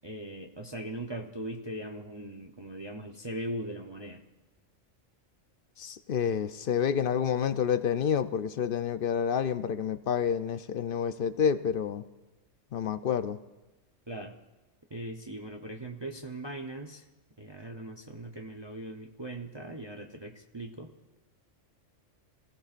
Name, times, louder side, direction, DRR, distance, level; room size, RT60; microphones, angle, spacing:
voice 1, 0.0-4.2 14.1-14.4 14.9-17.0 17.4-20.9, right 1 dB, 25° right, 2 dB, 0.7 m, -40 dB
voice 2, 5.8-12.0 12.7-13.4, left 7 dB, 55° left, 11 dB, 0.7 m, -29 dB
25.5 x 17.0 x 2.5 m, 1.1 s
omnidirectional pair, 1.3 m